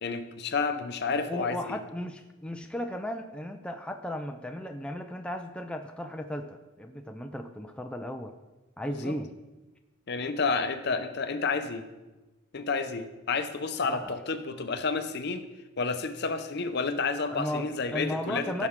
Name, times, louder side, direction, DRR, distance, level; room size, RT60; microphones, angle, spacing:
voice 1, 0.0-1.8 8.8-9.1 10.1-11.8 12.5-15.5 15.8-18.7, left 4 dB, 50° left, 9 dB, 0.7 m, -30 dB
voice 2, 1.3-8.3 8.8-9.3 13.8-14.2 17.3-18.7, left 1 dB, 5° left, 4 dB, 0.4 m, -35 dB
15.5 x 6.1 x 3.6 m, 1.1 s
head